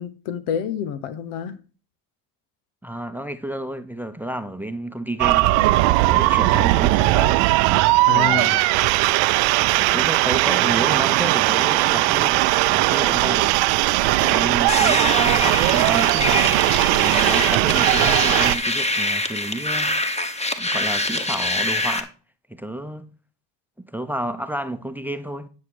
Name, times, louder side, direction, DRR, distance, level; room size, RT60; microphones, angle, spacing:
voice 1, 0.0-1.6 6.5-6.7 8.1-8.6, left 8 dB, 75° left, 1.1 m, -28 dB
voice 2, 2.8-5.8 6.1-7.8 8.1-8.6 9.7-13.8 14.2-20.0 20.6-22.1 22.5-23.1 23.8-25.5, right 1 dB, 5° right, 0.8 m, -31 dB
sound 1, 5.2-18.6, right 18 dB, 75° right, 0.7 m, -18 dB
sound 2, 14.7-22.0, left 2 dB, 15° left, 1.3 m, -24 dB
9.6 x 6.4 x 4.7 m
hypercardioid pair, 60°, 49 cm